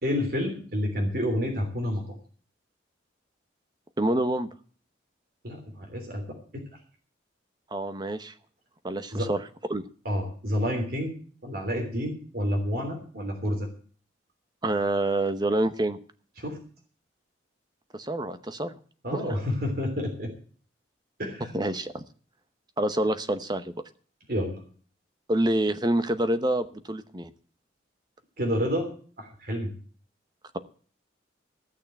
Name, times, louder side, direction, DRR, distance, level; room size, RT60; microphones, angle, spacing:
voice 1, 0.0-2.0 5.4-6.6 9.1-9.3 10.0-11.1 11.4-13.7 16.4-16.6 19.0-20.3 21.2-21.5 24.3-24.6 28.4-28.9 29.2-29.7, equal, 50° right, 2 dB, 3.2 m, -29 dB
voice 2, 4.0-4.5 7.7-8.3 8.8-9.8 14.6-16.0 17.9-18.7 19.1-19.4 21.4-22.0 22.8-23.7 25.3-27.3, right 1 dB, 20° right, 11 dB, 0.8 m, -27 dB
15.0 x 6.6 x 8.8 m, 0.43 s
head